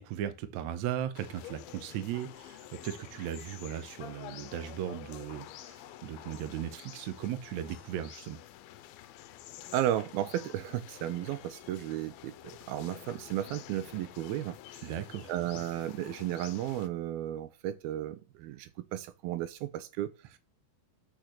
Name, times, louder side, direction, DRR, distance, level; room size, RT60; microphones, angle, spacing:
voice 1, 0.0-8.4 14.8-15.3, right 10 dB, 65° right, 1.9 m, -37 dB
sound 1, 1.1-16.9, left 13 dB, 90° left, 2.5 m, -49 dB
voice 2, 9.7-12.4 12.7-14.9 15.3-20.1, right 12 dB, 90° right, 2.7 m, -34 dB
6.6 x 6.5 x 6.4 m
omnidirectional pair, 4.3 m